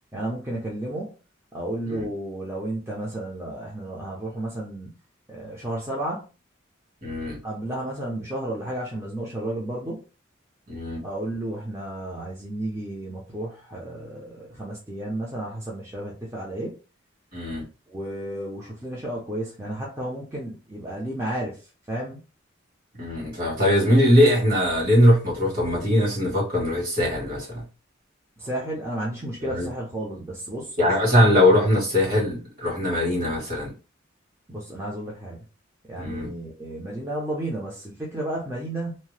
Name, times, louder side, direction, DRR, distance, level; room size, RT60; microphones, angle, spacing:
voice 1, 0.1-1.1 1.5-4.9 5.3-6.3 7.4-10.0 11.0-16.8 17.9-21.6 21.9-22.2 28.4-30.8 34.5-35.4 35.9-39.0, right 1 dB, 15° right, -4 dB, 0.6 m, -32 dB
voice 2, 7.0-7.4 10.7-11.0 17.3-17.6 23.0-27.6 29.4-29.7 30.8-33.7 35.9-36.3, left 1 dB, 45° right, -4 dB, 1.6 m, -21 dB
2.7 x 2.1 x 3.2 m, 0.32 s
head